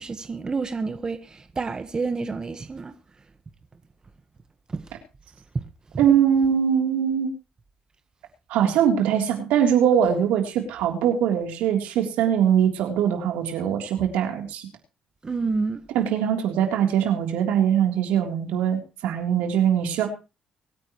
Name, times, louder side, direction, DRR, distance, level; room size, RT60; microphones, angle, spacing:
voice 1, 0.0-2.9 4.7-4.8 5.5-5.6 15.2-15.8, right 4 dB, 30° right, 1.4 m, -29 dB
voice 2, 6.0-7.3 8.5-14.6 15.9-20.1, right 9 dB, 85° right, 3.4 m, -22 dB
24.0 x 9.5 x 3.1 m
supercardioid pair, 75°, 2 cm